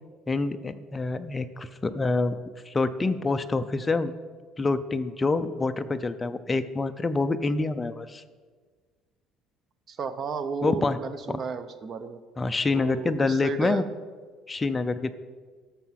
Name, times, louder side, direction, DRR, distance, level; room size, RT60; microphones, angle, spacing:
voice 1, 0.3-2.4 2.7-4.1 4.6-8.2 10.6-11.0 11.3-11.4 12.4-13.8 14.5-15.1, left 3 dB, 15° left, 9 dB, 0.4 m, -26 dB
voice 2, 9.9-12.2 12.7-13.9, right 5 dB, 35° right, 12 dB, 0.6 m, -33 dB
12.0 x 6.7 x 5.7 m, 1.5 s
cardioid pair, 160°, 0 cm